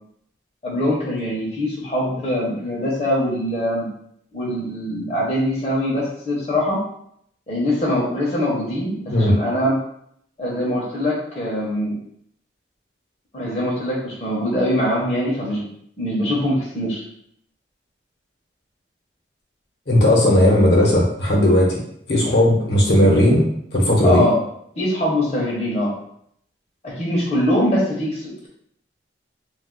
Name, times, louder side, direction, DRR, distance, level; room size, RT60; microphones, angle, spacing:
voice 1, 0.6-3.9 4.3-6.8 7.5-9.8 10.4-12.0 13.3-15.7 16.0-17.0 24.0-24.4 24.8-25.9 26.8-28.5, left 1 dB, 35° left, -6 dB, 0.7 m, -23 dB
voice 2, 19.9-21.8 22.1-23.5 23.7-24.3, left 1 dB, 65° left, -2 dB, 0.9 m, -16 dB
2.4 x 2.4 x 3.7 m, 0.69 s
head